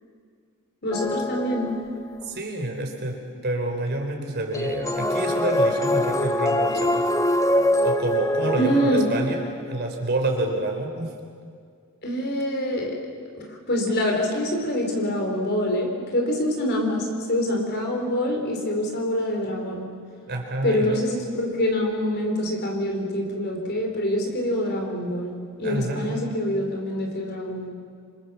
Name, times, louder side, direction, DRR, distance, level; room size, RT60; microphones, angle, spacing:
voice 1, 0.8-1.7 8.5-9.1 12.0-13.0 13.3-19.9 20.6-27.7, equal, 50° left, 1 dB, 4.6 m, -25 dB
sound 1, 0.9-2.2 4.5-9.8, left 1 dB, 15° left, 0.8 m, -24 dB
voice 2, 2.2-7.0 7.8-9.4 9.7-11.1 20.3-21.0 25.6-26.2, right 1 dB, 50° right, 2 dB, 4.2 m, -28 dB
27.5 x 26.0 x 7.2 m, 2.2 s
head